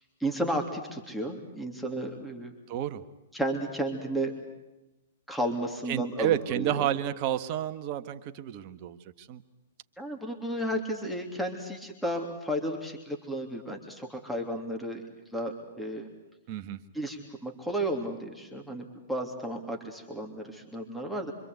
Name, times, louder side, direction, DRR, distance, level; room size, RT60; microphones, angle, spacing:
voice 1, 0.2-2.5 3.3-4.3 5.3-6.9 10.0-15.0 15.3-16.1 16.9-21.3, right 1 dB, ahead, 1 dB, 3.2 m, -33 dB
voice 2, 2.7-3.0 5.9-9.4 16.5-16.8, right 11 dB, 40° right, 9 dB, 1.5 m, -30 dB
26.0 x 26.0 x 8.2 m, 1.0 s
hypercardioid pair, 115°, 0 cm